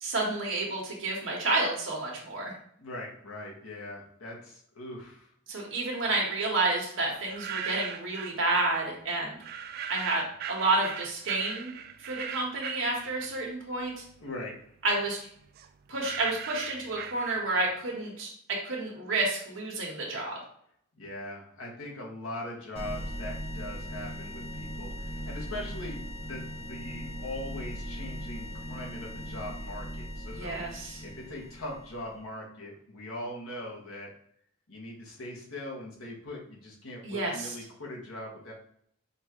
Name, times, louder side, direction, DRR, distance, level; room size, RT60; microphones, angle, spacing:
voice 1, 0.0-2.5 5.5-9.4 9.9-14.0 14.8-15.2 15.9-18.3 18.6-20.4 30.3-31.0 37.0-37.5, right 2 dB, 65° right, -1 dB, 1.2 m, -30 dB
voice 2, 2.8-5.3 14.2-14.6 20.9-30.6 31.0-34.1 34.7-38.5, left 1 dB, 85° left, -2 dB, 1.2 m, -41 dB
sound 1, 7.2-8.4 9.4-13.6 14.0-17.7, right 8 dB, 50° right, 0.3 m, -39 dB
sound 2, 22.7-32.2, equal, 30° left, 0.7 m, -39 dB
5.3 x 2.5 x 2.9 m, 0.67 s
head